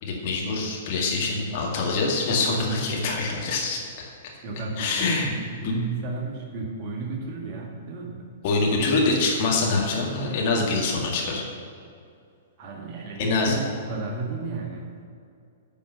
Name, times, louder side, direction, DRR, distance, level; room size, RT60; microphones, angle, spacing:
voice 1, 0.0-3.8 4.8-5.3 5.6-5.7 8.4-11.4 13.2-13.6, left 3 dB, 45° left, -2 dB, 2.1 m, -24 dB
voice 2, 4.4-8.3 8.6-9.0 12.6-14.9, right 3 dB, 35° right, 0 dB, 1.7 m, -33 dB
10.0 x 5.4 x 7.0 m, 2.4 s
figure-of-eight pair, 110°, 0 cm